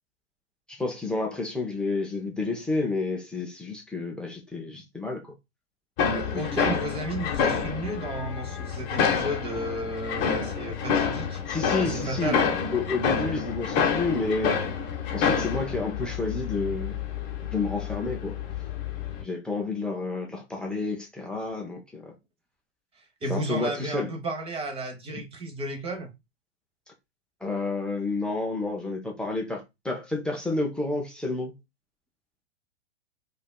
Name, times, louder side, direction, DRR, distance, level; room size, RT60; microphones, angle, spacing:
voice 1, 0.7-5.3 6.3-6.7 11.5-12.4 12.7-14.6 15.1-17.0 17.5-18.4 19.2-22.2 23.3-24.1 27.4-31.5, left 3 dB, 5° left, 0.4 m, -30 dB
sound 1, 6.0-19.2, left 6 dB, 30° left, 0.9 m, -28 dB
voice 2, 6.1-11.4 11.8-12.5 23.2-26.1, right 1 dB, 15° right, 0.9 m, -33 dB
4.9 x 2.5 x 2.2 m
figure-of-eight pair, 110°, 34 cm